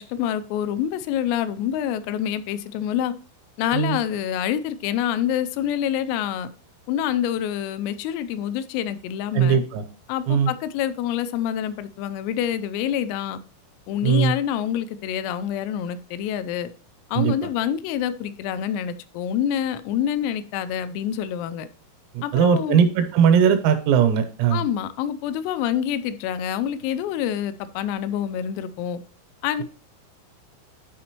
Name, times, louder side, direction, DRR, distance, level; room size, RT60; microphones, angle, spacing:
voice 1, 0.0-3.1 3.6-6.5 6.9-9.6 10.1-13.4 13.9-16.7 17.1-21.7 22.2-22.8 24.5-29.0 29.4-29.6, left 10 dB, 85° left, 13 dB, 3.3 m, -26 dB
voice 2, 9.3-9.8 10.3-10.5 14.0-14.3 17.2-17.3 22.3-24.6, right 7 dB, 90° right, 8 dB, 3.8 m, -19 dB
12.0 x 5.1 x 3.0 m, 0.40 s
omnidirectional pair, 5.9 m